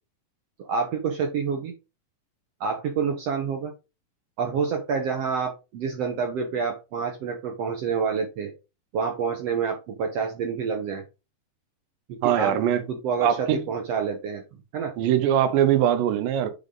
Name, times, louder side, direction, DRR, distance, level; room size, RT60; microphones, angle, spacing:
voice 1, 0.6-1.7 2.6-3.7 4.4-8.5 8.9-11.0 12.3-12.6 12.9-14.4 14.7-14.9, right 6 dB, 70° right, 1.5 m, -28 dB
voice 2, 12.2-12.8 13.2-13.7 15.0-16.5, right 10 dB, 85° right, 2.5 m, -22 dB
8.6 x 3.7 x 3.8 m
omnidirectional pair, 3.9 m